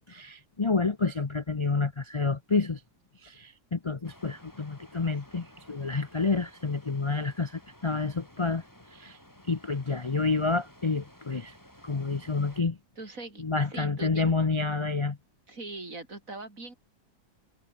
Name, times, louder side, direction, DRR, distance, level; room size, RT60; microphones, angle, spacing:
voice 1, 0.1-2.8 3.2-8.6 8.9-9.2 9.5-11.5 11.8-12.8 13.4-15.2, left 4 dB, 45° left, 0.3 m, -29 dB
sound 1, 4.0-12.6, equal, 10° left, 6.1 m, -55 dB
voice 2, 13.0-13.4 13.7-14.3 15.5-16.7, right 2 dB, 50° right, 4.8 m, -41 dB
omnidirectional pair, 1.9 m